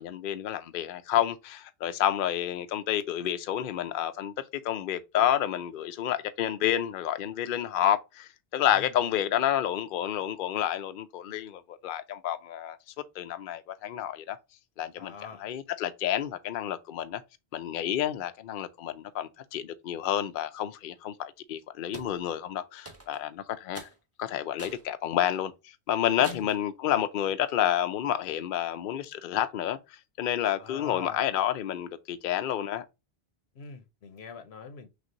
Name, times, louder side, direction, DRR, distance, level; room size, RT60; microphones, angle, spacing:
voice 1, 0.0-4.3 4.6-12.8 13.2-14.4 14.8-15.1 15.4-17.2 17.5-23.9 24.2-32.8, left 11 dB, 60° left, 0.7 m, -29 dB
voice 2, 15.0-15.4 26.2-26.5 30.4-31.2 33.5-34.9, left 6 dB, 85° left, 1.1 m, -44 dB
sound 1, 21.9-22.1 22.9-23.3 23.7-24.0 24.6-24.9 25.4-25.5 26.2-26.6, right 2 dB, 15° right, 0.9 m, -44 dB
6.1 x 2.5 x 2.6 m
omnidirectional pair, 1.1 m